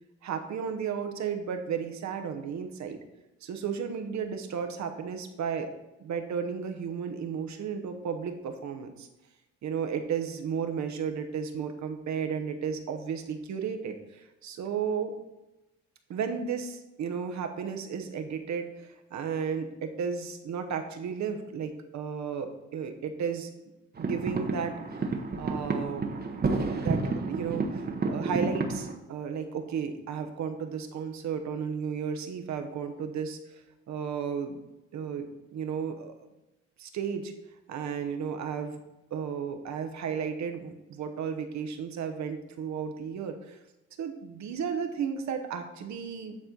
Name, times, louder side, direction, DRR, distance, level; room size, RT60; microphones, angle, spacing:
voice 1, 0.2-3.0 3.4-5.7 6.0-9.1 9.6-15.1 16.1-23.5 24.0-26.2 26.7-33.6 33.9-34.6 34.9-36.1 36.8-37.3 37.7-38.8 39.1-43.6 44.0-46.4, right 7 dB, 65° right, 7 dB, 1.0 m, -34 dB
sound 1, 24.0-28.9, right 3 dB, 30° right, 1.0 m, -30 dB
9.7 x 4.2 x 3.9 m, 0.98 s
cardioid pair, 90°, 30 cm